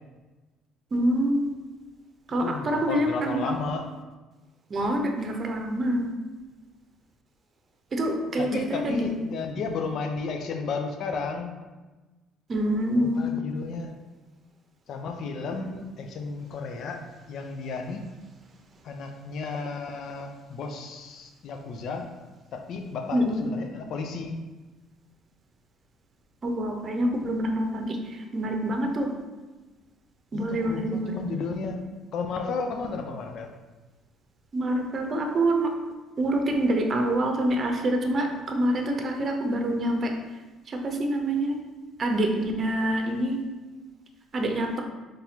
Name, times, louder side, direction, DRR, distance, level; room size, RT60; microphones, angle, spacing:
voice 1, 0.9-1.5 2.3-3.6 4.7-6.1 7.9-9.1 12.5-13.3 23.1-23.4 26.4-29.1 30.3-31.1 34.5-35.7 36.2-40.2 40.7-41.6 42.0-43.4 44.3-44.8, right 1 dB, 45° right, 3 dB, 0.7 m, -26 dB
voice 2, 2.4-3.9 8.4-11.5 13.0-13.9 14.9-17.0 17.3-18.1 18.8-22.1 22.5-24.3 30.3-33.5, left 4 dB, 65° left, 5 dB, 0.5 m, -33 dB
4.1 x 3.3 x 2.8 m, 1.2 s
hypercardioid pair, 60°, 0 cm